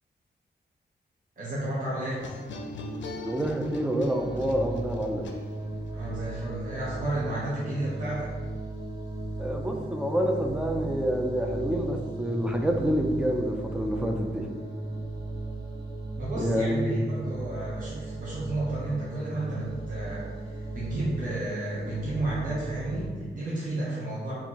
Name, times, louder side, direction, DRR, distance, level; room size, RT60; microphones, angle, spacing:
voice 1, 1.4-2.2 5.9-8.3 16.2-20.3 20.7-24.3, right 2 dB, 45° right, -7 dB, 0.8 m, -32 dB
sound 1, 2.2-5.9, left 2 dB, 85° left, 0.4 m, -40 dB
voice 2, 3.2-5.3 9.4-14.5 16.4-16.9, equal, 5° right, 3 dB, 0.3 m, -27 dB
sound 2, 4.1-23.1, right 2 dB, 20° right, 1.4 m, -36 dB
4.3 x 2.8 x 2.8 m, 1.4 s
wide cardioid pair, 140°, 18 cm